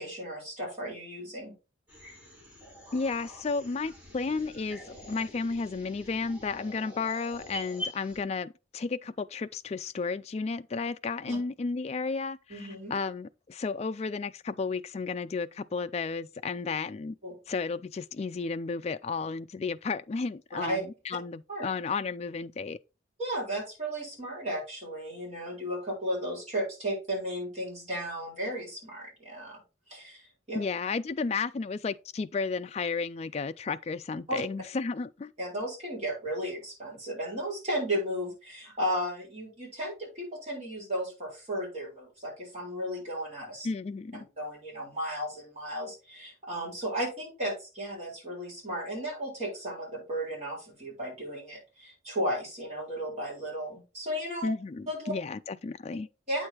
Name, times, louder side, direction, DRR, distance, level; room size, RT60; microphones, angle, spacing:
voice 1, 0.0-1.5 11.3-11.4 12.5-13.0 17.2-17.4 20.5-20.8 21.5-21.6 23.2-29.6 29.9-30.6 34.3-34.4 35.4-43.7 44.4-54.5 54.9-55.1 56.3-56.5, equal, 35° right, 4.2 m, -34 dB
sound 1, 1.9-8.2, left 1 dB, 10° right, 3.4 m, -45 dB
voice 2, 2.9-17.2 17.5-22.8 30.5-35.3 43.6-44.3 54.4-56.1, left 4 dB, 30° left, 0.3 m, -33 dB
8.6 x 6.4 x 2.9 m
head